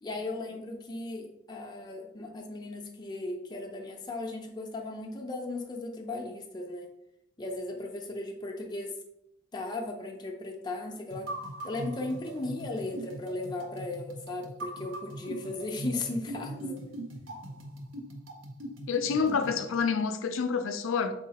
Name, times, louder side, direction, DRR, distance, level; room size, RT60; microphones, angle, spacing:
voice 1, 0.0-6.9 7.4-9.0 9.5-11.3 11.6-16.8 17.3-17.4, left 2 dB, 20° left, 0.5 m, -36 dB
sound 1, 11.1-19.6, right 1 dB, 90° right, 0.7 m, -40 dB
voice 2, 18.9-21.1, left 5 dB, 85° left, 0.4 m, -28 dB
3.9 x 3.8 x 2.8 m
head